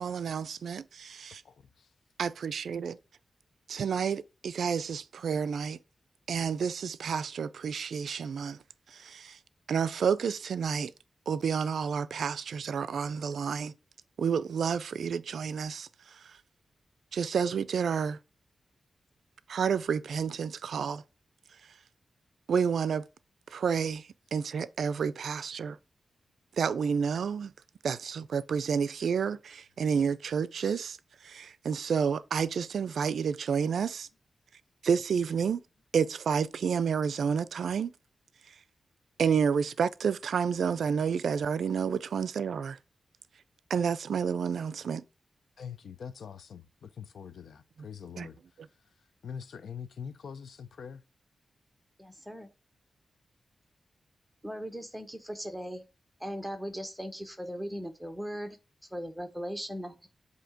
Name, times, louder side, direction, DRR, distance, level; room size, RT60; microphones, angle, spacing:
voice 1, 0.0-1.4 2.2-3.0 3.7-5.8 6.3-8.6 8.9-9.4 9.7-10.9 11.3-13.7 14.2-16.4 17.1-18.2 19.5-21.0 22.5-23.0 23.5-25.8 26.6-27.5 27.8-31.0 31.2-34.1 34.8-35.6 35.9-37.9 38.5-38.6 39.2-42.8 43.7-45.0 48.2-48.3, right 6 dB, 80° right, 0.3 m, -30 dB
voice 2, 1.4-1.9 45.6-48.4 49.2-51.0, left 7 dB, 75° left, 0.5 m, -44 dB
voice 3, 52.0-52.5 54.4-55.8 56.2-58.6 58.9-60.1, equal, ahead, 0.8 m, -38 dB
7.7 x 2.7 x 4.9 m
wide cardioid pair, 175°, 0 cm